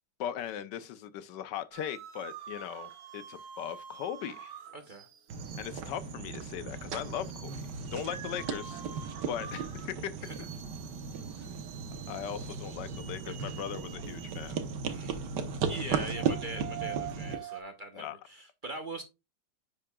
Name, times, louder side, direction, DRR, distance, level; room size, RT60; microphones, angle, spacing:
voice 1, 0.2-4.5 5.6-7.7 7.9-8.8 9.2-10.1 12.1-14.6 17.9-18.2, left 10 dB, 85° left, 1.4 m, -39 dB
sound 1, 1.7-17.6, right 9 dB, 65° right, 1.4 m, -47 dB
voice 2, 4.7-5.1 10.2-10.3 13.2-13.5 14.9-15.1 15.7-19.0, right 2 dB, 40° right, 0.8 m, -42 dB
sound 2, 5.3-17.4, right 6 dB, 80° right, 1.5 m, -36 dB
10.0 x 4.9 x 2.3 m
omnidirectional pair, 1.8 m